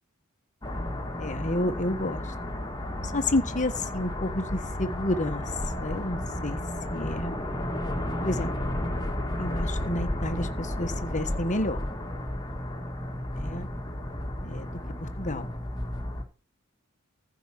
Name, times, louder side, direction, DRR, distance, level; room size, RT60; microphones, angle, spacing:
sound 1, 0.6-16.2, left 1 dB, 20° left, 2.2 m, -32 dB
voice 1, 1.2-2.3 3.0-5.4 5.8-6.6 6.9-7.3 8.2-8.7 9.4-11.8 13.4-13.7 14.4-15.5, left 1 dB, 35° left, 9 dB, 1.4 m, -30 dB
15.0 x 5.1 x 7.5 m, 0.35 s
head